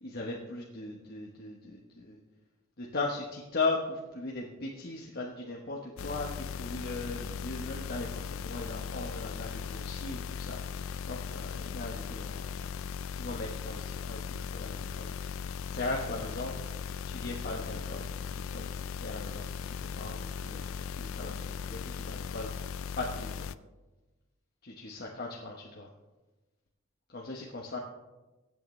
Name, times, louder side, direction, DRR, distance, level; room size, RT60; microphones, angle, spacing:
voice 1, 0.0-2.2 2.8-10.8 11.1-12.7 13.2-15.1 15.7-16.5 17.1-18.1 18.3-19.5 19.8-22.7 22.9-23.5 24.6-25.9 27.1-27.8, left 3 dB, 50° left, -2 dB, 1.1 m, -38 dB
sound 1, 6.0-23.5, left 6 dB, 70° left, 0.4 m, -38 dB
21.5 x 8.6 x 3.2 m, 1.1 s
head